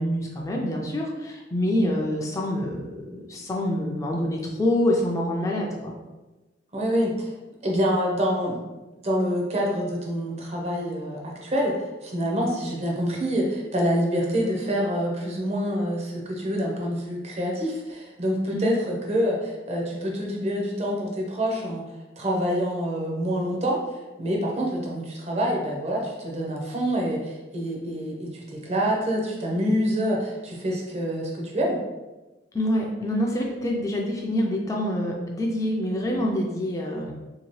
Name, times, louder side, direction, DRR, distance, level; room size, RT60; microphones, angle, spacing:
voice 1, 0.0-5.9 18.5-18.7 32.5-37.1, left 1 dB, 20° left, -1 dB, 0.4 m, -26 dB
voice 2, 6.7-7.3 7.6-8.6 9.0-21.8 22.2-23.8 24.2-31.8, equal, 35° right, -1 dB, 0.6 m, -26 dB
2.8 x 2.7 x 3.0 m, 1.1 s
head